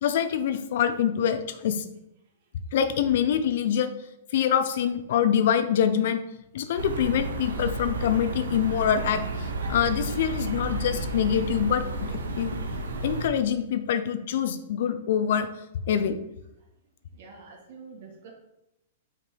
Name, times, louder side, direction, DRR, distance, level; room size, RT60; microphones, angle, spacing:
voice 1, 0.0-1.9 2.7-3.9 4.3-6.2 6.5-12.6 13.0-15.5 15.9-16.2, left 8 dB, 65° left, 10 dB, 0.6 m, -25 dB
sound 1, 6.8-13.3, right 2 dB, 90° right, 0.8 m, -32 dB
voice 2, 17.1-18.3, right 4 dB, 60° right, 0 dB, 1.8 m, -46 dB
5.9 x 3.7 x 4.6 m, 0.86 s
hypercardioid pair, 130°, 0 cm